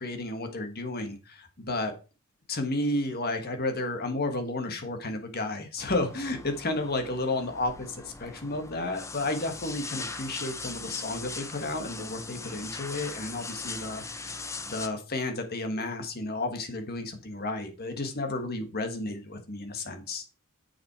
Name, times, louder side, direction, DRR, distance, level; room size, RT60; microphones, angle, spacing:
voice 1, 0.0-1.9 2.5-20.2, left 2 dB, 45° left, 5 dB, 1.5 m, -32 dB
sound 1, 5.8-14.9, left 4 dB, 15° left, 0.5 m, -40 dB
7.3 x 6.0 x 4.7 m, 0.32 s
head